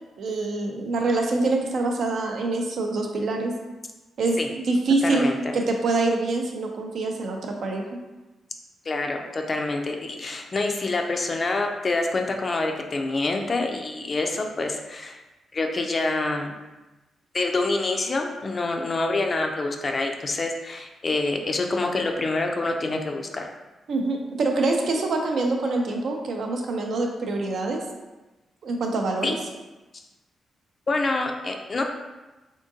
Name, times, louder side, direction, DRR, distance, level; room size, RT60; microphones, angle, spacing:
voice 1, 0.2-3.5 4.2-5.3 5.5-8.0 23.9-27.8 28.6-29.3, right 3 dB, 65° right, 2 dB, 0.6 m, -25 dB
voice 2, 5.0-5.4 8.9-15.2 15.5-16.5 17.3-23.5 29.2-29.3 30.9-31.8, left 2 dB, 30° left, 3 dB, 0.4 m, -26 dB
3.7 x 3.6 x 2.6 m, 1.1 s
cardioid pair, 135°, 0 cm